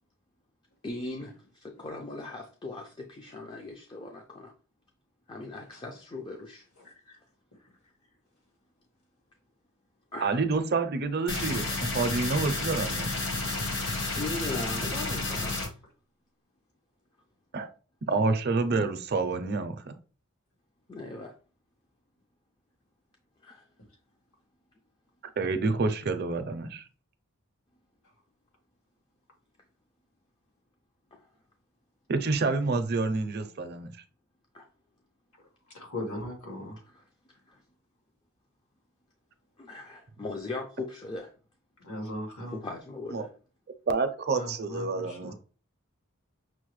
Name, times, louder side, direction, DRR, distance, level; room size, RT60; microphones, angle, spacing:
voice 1, 0.8-4.5 5.3-6.6 10.1-10.4 14.2-15.6 20.9-21.3 23.4-23.6 31.1-31.2 34.5-34.6 36.9-37.0 37.5-37.6 39.6-41.3 42.5-43.3, left 2 dB, 20° left, 2 dB, 0.4 m, -39 dB
voice 2, 6.8-7.2 35.7-36.8 41.8-42.6 44.3-45.3, left 1 dB, 85° left, 0 dB, 1.8 m, -38 dB
voice 3, 10.2-13.1 17.5-17.7 18.0-19.9 25.4-26.8 32.1-33.9 43.1-43.2 43.9-45.3, right 3 dB, 45° right, 9 dB, 0.5 m, -28 dB
sound 1, 11.3-15.7, left 2 dB, 55° left, 1.0 m, -31 dB
6.1 x 2.1 x 3.1 m, 0.36 s
head